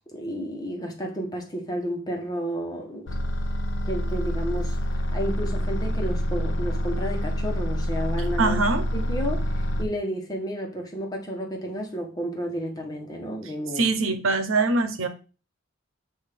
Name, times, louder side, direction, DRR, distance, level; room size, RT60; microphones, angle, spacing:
voice 1, 0.0-3.0 3.8-8.6 8.9-13.9, equal, 20° left, 1.2 m, -32 dB
sound 1, 3.1-9.9, equal, 65° left, 0.8 m, -27 dB
voice 2, 8.4-8.8 13.8-15.1, right 3 dB, 80° right, 1.0 m, -23 dB
7.9 x 2.8 x 5.0 m
head